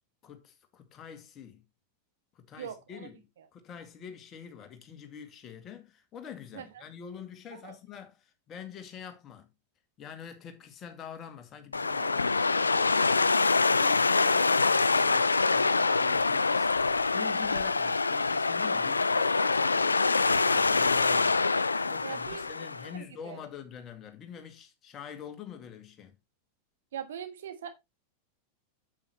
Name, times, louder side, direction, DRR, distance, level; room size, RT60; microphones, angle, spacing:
voice 1, 0.2-1.6 2.3-9.5 10.0-26.2, left 8 dB, 30° left, 2.1 m, -46 dB
voice 2, 2.6-3.1 3.4-3.5 6.5-6.8 7.5-7.8 11.9-12.1 22.0-22.4 22.9-23.4 26.9-27.7, right 8 dB, 60° right, 1.4 m, -41 dB
sound 1, 11.7-22.9, left 4 dB, 80° left, 0.4 m, -25 dB
8.7 x 8.0 x 3.1 m
figure-of-eight pair, 90°, 0 cm